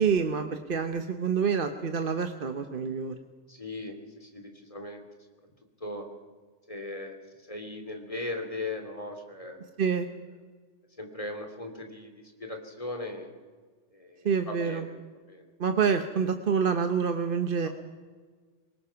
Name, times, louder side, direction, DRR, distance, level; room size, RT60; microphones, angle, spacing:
voice 1, 0.0-3.2 9.8-10.1 14.2-14.9 15.6-17.7, right 6 dB, 50° right, 7 dB, 1.1 m, -27 dB
voice 2, 3.5-5.1 5.8-6.1 6.7-7.2 7.5-9.6 11.0-13.3 13.9-14.9 15.3-15.5 17.6-17.7, left 2 dB, 30° left, 4 dB, 3.0 m, -38 dB
23.0 x 20.0 x 5.8 m, 1.5 s
omnidirectional pair, 1.2 m